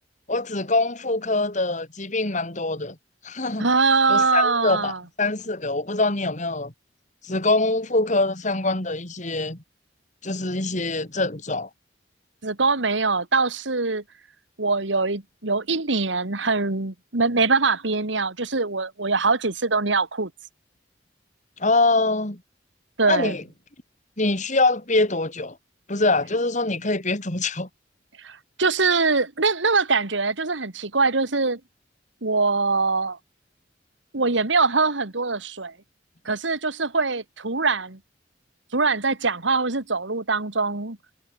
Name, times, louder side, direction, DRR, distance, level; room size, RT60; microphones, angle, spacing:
voice 1, 0.3-2.9 3.2-3.7 4.1-6.7 7.3-9.6 10.2-11.7 21.6-22.4 23.1-23.4 24.2-25.6 25.9-27.7, left 2 dB, 40° left, 3.4 m, -24 dB
voice 2, 3.6-5.0 12.4-14.0 14.6-20.3 23.0-23.4 28.2-31.6 32.2-33.2 34.1-35.7 36.3-38.0 38.7-41.0, right 4 dB, 80° right, 2.2 m, -23 dB
head